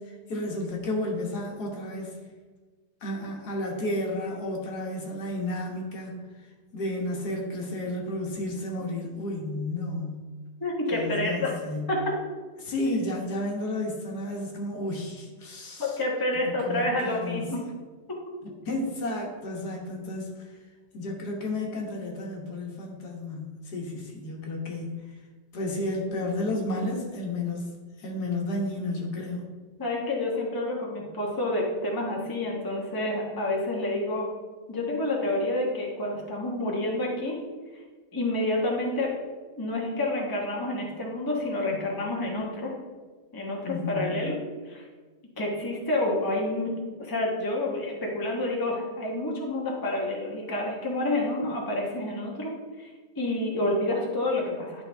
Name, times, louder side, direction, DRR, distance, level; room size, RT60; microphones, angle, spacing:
voice 1, 0.0-2.2 3.0-6.2 6.7-10.3 10.9-11.9 12.6-16.0 16.4-17.5 18.4-20.5 20.9-25.2 25.5-27.7 28.0-29.5 43.6-44.3, left 1 dB, 70° left, 0 dB, 1.8 m, -32 dB
voice 2, 10.6-11.5 11.9-12.1 15.8-17.6 18.1-18.2 29.8-34.3 34.7-37.4 37.7-37.8 38.1-39.1 39.6-42.7 43.3-44.4 44.7-44.9 45.4-46.7 47.0-52.5 52.8-52.9 53.2-54.8, left 1 dB, 15° left, -2 dB, 1.1 m, -28 dB
11.0 x 5.3 x 3.4 m, 1.4 s
omnidirectional pair, 1.9 m